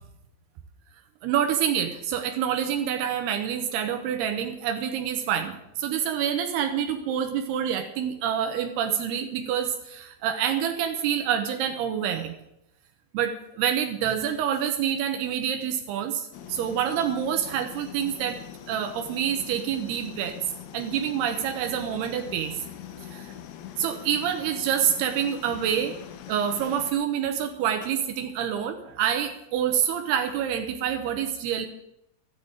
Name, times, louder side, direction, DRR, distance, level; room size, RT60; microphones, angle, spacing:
voice 1, 1.2-12.4 13.1-18.4 18.7-20.4 20.7-22.6 23.1-23.3 23.8-25.9 26.3-31.7, right 9 dB, 85° right, 5 dB, 3.1 m, -27 dB
sound 1, 16.3-26.9, left 10 dB, 80° left, 2.9 m, -43 dB
13.5 x 8.1 x 9.0 m, 0.81 s
omnidirectional pair, 4.5 m